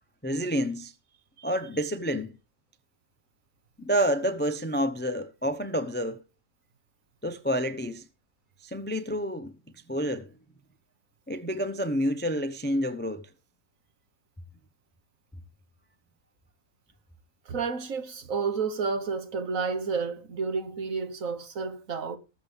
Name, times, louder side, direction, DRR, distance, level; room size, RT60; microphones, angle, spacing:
voice 1, 0.2-0.9 1.4-2.3 3.8-6.2 7.2-8.0 8.6-9.5 9.9-10.3 11.3-13.3, equal, 10° left, 0.5 m, -28 dB
voice 2, 17.4-22.2, right 5 dB, 60° right, 1.6 m, -31 dB
19.5 x 7.2 x 3.4 m
omnidirectional pair, 1.6 m